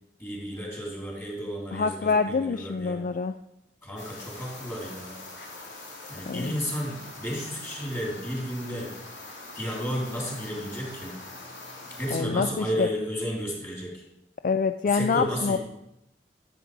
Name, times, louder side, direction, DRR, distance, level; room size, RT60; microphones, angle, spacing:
voice 1, 0.2-3.0 3.8-5.2 6.1-8.9 9.5-11.1 12.0-14.0 14.9-15.6, equal, 15° left, -3 dB, 3.2 m, -32 dB
voice 2, 1.7-3.4 6.3-6.5 12.1-12.9 14.4-15.6, left 5 dB, 45° left, 9 dB, 0.3 m, -26 dB
sound 1, 4.0-12.2, left 2 dB, 75° left, 2.8 m, -43 dB
11.5 x 7.8 x 4.7 m, 0.87 s
head